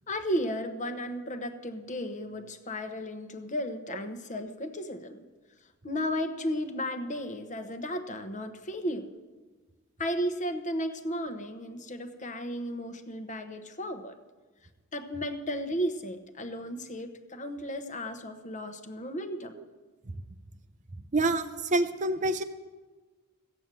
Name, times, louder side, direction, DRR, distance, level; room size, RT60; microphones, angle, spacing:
voice 1, 0.1-5.2 5.8-9.1 10.0-14.2 14.9-19.6, equal, 35° left, 8 dB, 1.0 m, -34 dB
voice 2, 21.1-22.4, right 2 dB, 35° right, 10 dB, 0.6 m, -27 dB
14.5 x 8.9 x 7.5 m, 1.3 s
head